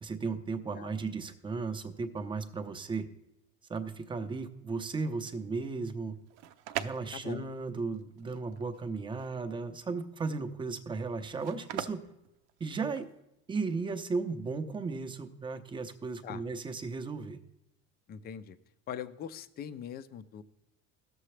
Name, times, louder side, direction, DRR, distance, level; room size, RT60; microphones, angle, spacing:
voice 1, 0.0-3.1 3.7-6.2 6.8-12.0 12.6-13.1 13.5-17.4, right 4 dB, 15° right, 7 dB, 0.6 m, -35 dB
sound 1, 6.1-13.2, right 11 dB, 75° right, 0.7 m, -43 dB
voice 2, 7.1-7.5 16.2-16.4 18.1-18.6 18.9-20.4, left 9 dB, 30° left, 11 dB, 0.5 m, -42 dB
16.5 x 6.7 x 3.2 m, 0.88 s
cardioid pair, 135°, 34 cm